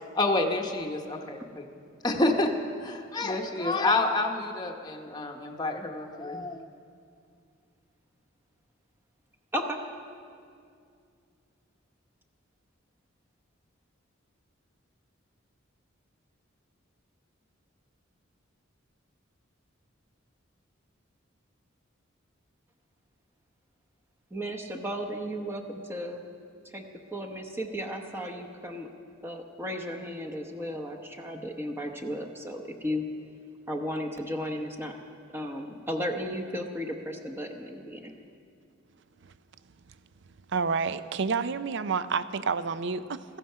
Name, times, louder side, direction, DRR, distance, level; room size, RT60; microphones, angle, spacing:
voice 1, 0.1-1.6 2.0-2.5 2.8-6.6, left 2 dB, 20° left, 2 dB, 0.9 m, -28 dB
voice 2, 24.3-26.2 26.7-26.8 27.1-28.9 29.2-33.0 33.7-35.0 35.3-38.1, equal, 10° right, 1 dB, 0.9 m, -34 dB
voice 3, 40.5-43.2, right 5 dB, 65° right, 14 dB, 0.5 m, -29 dB
15.0 x 14.0 x 5.5 m, 2.3 s
head